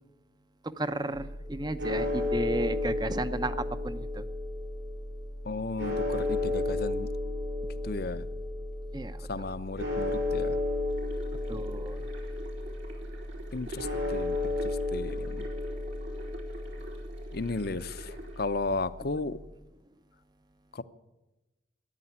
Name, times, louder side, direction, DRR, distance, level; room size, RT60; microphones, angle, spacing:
voice 1, 0.8-4.2 8.9-9.5 11.5-12.1, right 2 dB, 20° right, 13 dB, 0.6 m, -34 dB
sound 1, 1.1-19.5, left 2 dB, 65° right, 6.1 m, -33 dB
voice 2, 5.4-7.1 7.8-8.3 9.3-10.6 13.5-15.5 17.3-19.4 20.7-20.8, left 3 dB, 50° left, 14 dB, 0.7 m, -35 dB
sound 2, 10.9-18.4, right 2 dB, 80° right, 3.8 m, -47 dB
13.5 x 10.0 x 9.8 m, 1.1 s
head